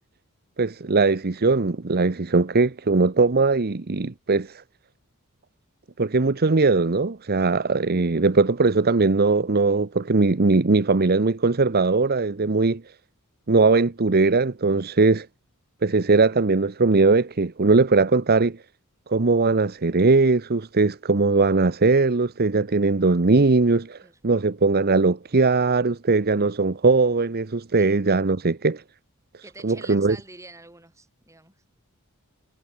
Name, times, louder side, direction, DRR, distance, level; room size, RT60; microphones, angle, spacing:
voice 1, 0.6-4.6 6.0-12.8 13.5-15.3 15.8-18.6 19.1-28.8 29.6-30.2, right 3 dB, 45° right, 0.9 m, -20 dB
voice 2, 29.4-31.6, right 2 dB, 15° right, 7.0 m, -46 dB
head